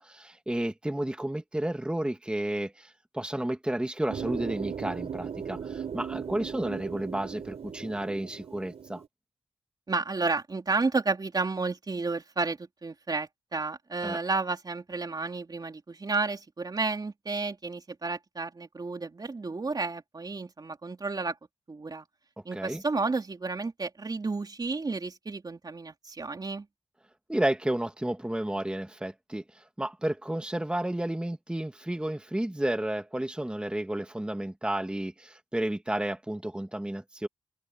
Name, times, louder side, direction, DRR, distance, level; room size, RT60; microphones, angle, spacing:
voice 1, 0.0-9.0 14.0-14.2 22.5-22.8 27.3-37.3, right 1 dB, 10° right, 1.3 m, -32 dB
sound 1, 4.1-9.1, right 7 dB, 70° right, 4.5 m, -37 dB
voice 2, 9.9-21.4 21.7-22.1 22.5-26.7, right 3 dB, 35° right, 3.5 m, -31 dB
wide cardioid pair, 100°, 11 cm